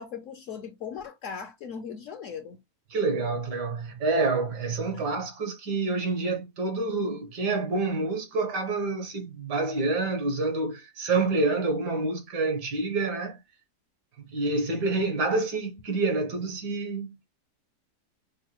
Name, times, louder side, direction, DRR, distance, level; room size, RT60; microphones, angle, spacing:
voice 1, 0.0-2.6 4.9-5.0, left 6 dB, 65° left, 0.8 m, -38 dB
voice 2, 2.9-13.4 14.2-17.3, right 3 dB, 85° right, 1.7 m, -28 dB
5.3 x 2.2 x 3.0 m
omnidirectional pair, 1.8 m